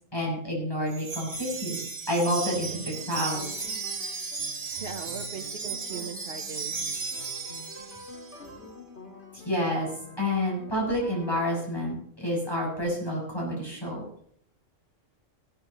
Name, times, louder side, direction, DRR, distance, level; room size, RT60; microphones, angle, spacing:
voice 1, 0.1-1.8 2.1-3.5 9.3-9.9 10.2-14.0, equal, 20° left, -3 dB, 6.8 m, -29 dB
Wind chime, 0.9-8.4, right 4 dB, 30° right, 1.4 m, -35 dB
sound 1, 2.5-11.9, left 2 dB, 55° left, 2.5 m, -47 dB
voice 2, 4.7-6.8, right 6 dB, 50° right, 4 dB, 1.1 m, -39 dB
17.0 x 13.0 x 3.0 m, 0.63 s
omnidirectional pair, 1.3 m